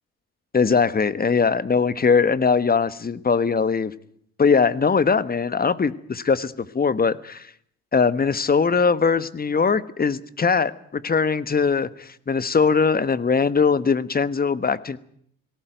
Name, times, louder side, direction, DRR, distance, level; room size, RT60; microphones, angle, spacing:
voice 1, 0.5-3.9 4.4-7.5 7.9-15.0, left 5 dB, 30° left, 15 dB, 1.3 m, -21 dB
19.5 x 17.0 x 9.2 m, 0.67 s
supercardioid pair, 65°, 31 cm